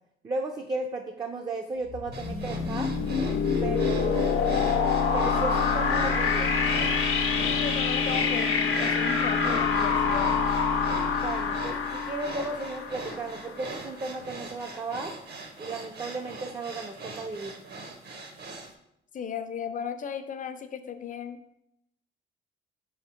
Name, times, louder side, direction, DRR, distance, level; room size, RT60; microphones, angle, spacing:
voice 1, 0.2-2.9 3.6-4.4 5.1-6.5 11.2-15.1 15.6-17.5, right 3 dB, 20° right, 3 dB, 0.4 m, -34 dB
sound 1, 1.9-13.6, left 5 dB, 80° left, 0.7 m, -26 dB
sound 2, 2.1-18.7, right 3 dB, 55° right, 0.8 m, -41 dB
voice 2, 7.4-10.3 19.1-21.4, left 7 dB, 40° left, 9 dB, 0.5 m, -35 dB
3.6 x 3.3 x 4.3 m, 0.79 s
cardioid pair, 90°, 20 cm